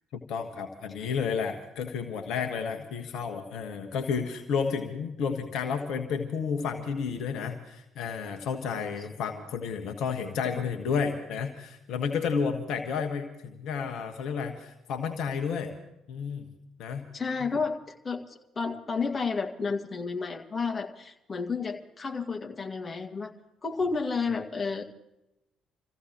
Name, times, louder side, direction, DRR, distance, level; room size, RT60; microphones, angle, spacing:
voice 1, 0.1-15.7 16.1-16.5 16.8-17.1 17.4-17.5, left 6 dB, 65° left, 6 dB, 1.3 m, -31 dB
voice 2, 17.1-23.3 23.6-24.8, left 4 dB, 35° left, 2 dB, 1.9 m, -31 dB
28.0 x 15.5 x 3.0 m, 0.90 s
hypercardioid pair, 50°, 0 cm